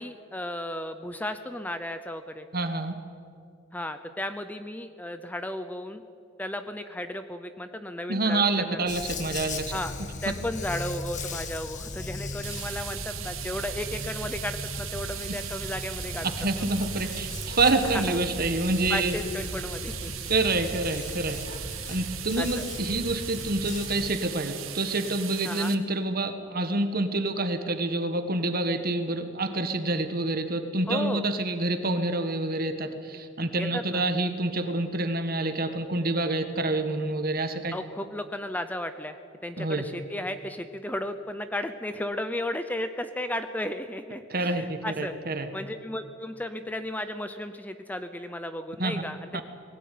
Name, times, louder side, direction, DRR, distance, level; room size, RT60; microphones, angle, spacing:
voice 1, 0.0-2.5 3.7-6.0 6.4-8.8 9.7-9.9 10.2-16.3 17.0-17.1 17.9-18.2 18.9-20.3 21.8-22.0 22.4-22.6 25.4-25.7 30.9-31.3 33.6-34.0 37.7-45.1 45.5-49.4, left 1 dB, 10° left, 9 dB, 0.6 m, -34 dB
voice 2, 2.5-3.0 8.1-9.7 16.4-19.2 20.3-21.4 21.9-37.7 39.6-39.8 44.3-45.5 48.8-48.9 49.3-49.4, right 2 dB, 45° right, 8 dB, 1.6 m, -27 dB
Dog, 8.9-24.1, left 2 dB, 35° left, 1.6 m, -37 dB
sound 1, 12.4-25.7, right 12 dB, 80° right, 1.4 m, -38 dB
20.5 x 17.0 x 9.4 m, 2.5 s
head